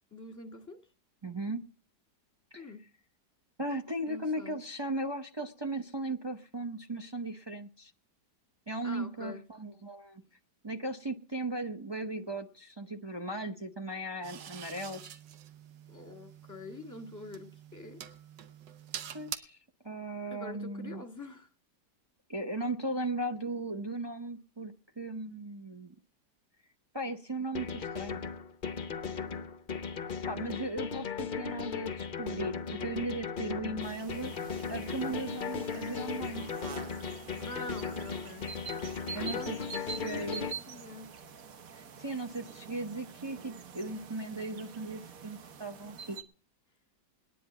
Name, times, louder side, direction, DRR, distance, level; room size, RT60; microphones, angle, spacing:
voice 1, 0.1-0.8 2.5-2.8 4.1-4.6 8.8-9.5 15.9-18.0 20.3-21.5 37.4-38.5 39.1-41.1, left 2 dB, 10° left, 4 dB, 1.7 m, -45 dB
voice 2, 1.2-1.6 2.5-2.7 3.6-7.9 8.7-10.2 10.6-15.2 19.1-19.6 19.8-21.0 22.3-25.9 26.9-28.2 29.1-29.4 30.3-34.3 34.7-36.5 39.1-39.6 39.9-40.5 41.7-46.2, right 2 dB, 30° right, 3 dB, 0.5 m, -37 dB
sound 1, 14.2-19.4, right 9 dB, 90° right, 1.6 m, -46 dB
sound 2, 27.5-40.5, left 6 dB, 45° left, 0.7 m, -37 dB
sound 3, 33.8-46.2, right 6 dB, 55° right, 1.3 m, -46 dB
20.0 x 10.0 x 4.3 m, 0.40 s
omnidirectional pair, 1.9 m